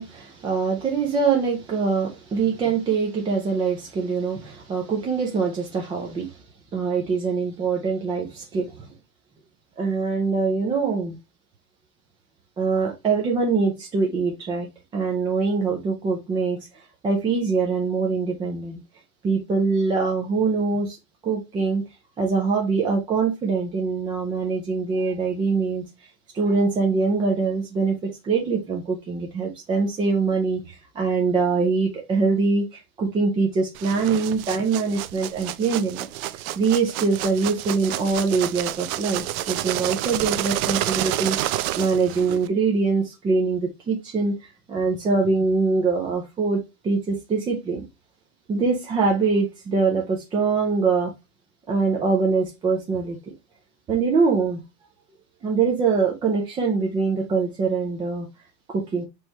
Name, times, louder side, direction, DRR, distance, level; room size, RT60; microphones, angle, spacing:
voice 1, 0.0-6.4 6.7-8.9 9.8-11.2 12.6-14.7 14.9-16.6 17.0-18.8 19.2-21.0 21.2-21.8 22.2-25.8 26.3-36.1 36.6-47.8 48.5-51.1 51.7-53.2 53.9-54.6 55.4-58.3 58.7-59.1, right 4 dB, 15° right, 0.3 m, -23 dB
sound 1, 33.7-42.5, right 14 dB, 70° right, 0.6 m, -29 dB
4.5 x 3.2 x 2.9 m
supercardioid pair, 130°, 44 cm